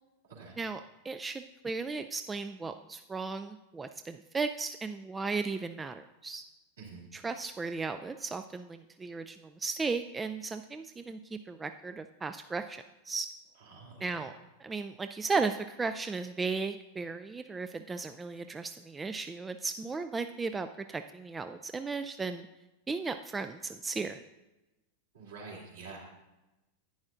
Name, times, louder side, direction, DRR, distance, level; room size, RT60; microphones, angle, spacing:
voice 1, 0.6-6.4 7.1-13.3 14.0-14.3 14.6-22.5 22.9-24.2, right 4 dB, 15° right, 9 dB, 0.3 m, -35 dB
voice 2, 13.7-14.3 25.1-26.0, right 4 dB, 65° right, -3 dB, 2.9 m, -47 dB
11.0 x 9.5 x 2.5 m, 1.0 s
figure-of-eight pair, 90°, 0 cm